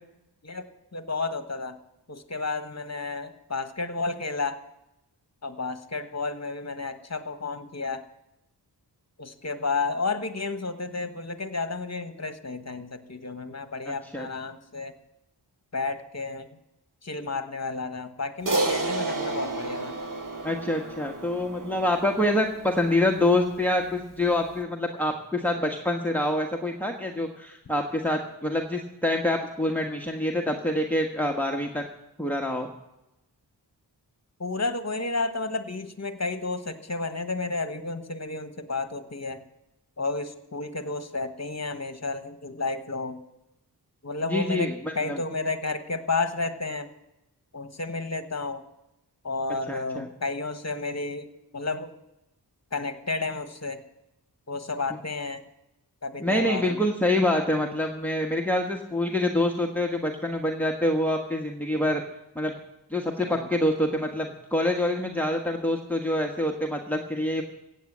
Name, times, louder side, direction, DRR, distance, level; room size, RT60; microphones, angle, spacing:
voice 1, 0.9-1.8 2.1-4.6 5.4-8.0 9.2-14.9 15.7-16.5 17.0-20.0 34.4-39.4 40.0-43.2 44.0-46.9 47.5-48.7 49.2-51.9 52.7-53.8 54.5-55.4 56.0-56.8 63.2-63.5, left 3 dB, 40° left, 9 dB, 1.4 m, -31 dB
voice 2, 13.9-14.3 20.4-31.8 32.2-32.7 44.3-44.7 45.0-45.2 49.7-50.1 56.2-62.0 62.3-62.5 62.9-67.4, left 1 dB, 5° left, 2 dB, 1.4 m, -26 dB
Crash cymbal, 18.5-23.0, right 3 dB, 45° right, 1.6 m, -31 dB
16.0 x 8.5 x 7.4 m, 0.88 s
wide cardioid pair, 65°, 42 cm